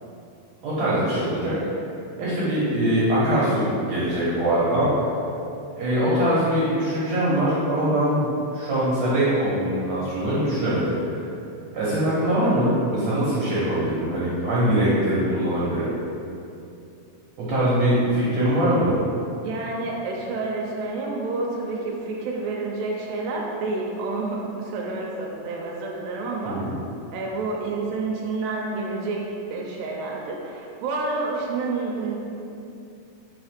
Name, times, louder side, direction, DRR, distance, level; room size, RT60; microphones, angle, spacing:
voice 1, 0.6-1.5 2.2-4.9 5.8-8.3 8.5-11.2 11.7-15.9 17.4-18.9 26.4-26.7, right 1 dB, 65° right, -9 dB, 2.0 m, -22 dB
voice 2, 19.4-26.6 27.1-29.2 29.5-32.2, right 3 dB, 85° right, -2 dB, 2.3 m, -29 dB
5.8 x 3.5 x 5.0 m, 2.6 s
omnidirectional pair, 3.9 m